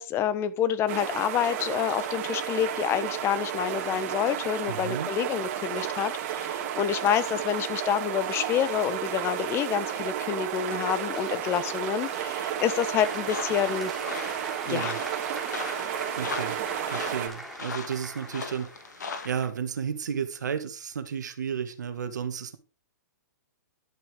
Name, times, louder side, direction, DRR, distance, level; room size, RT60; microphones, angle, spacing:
voice 1, 0.0-13.9 14.6-15.0, left 9 dB, 25° left, 1.1 m, -28 dB
sound 1, 0.9-17.3, right 10 dB, 40° right, 3.2 m, -32 dB
voice 2, 4.7-5.1 14.7-15.0 16.2-16.6 16.8-18.7 19.0-22.6, right 7 dB, 75° right, 2.0 m, -33 dB
Applause, 10.5-19.5, right 1 dB, ahead, 3.9 m, -42 dB
sound 2, 12.9-19.5, left 5 dB, 70° left, 2.2 m, -39 dB
11.5 x 6.3 x 5.0 m
hypercardioid pair, 125°, 10 cm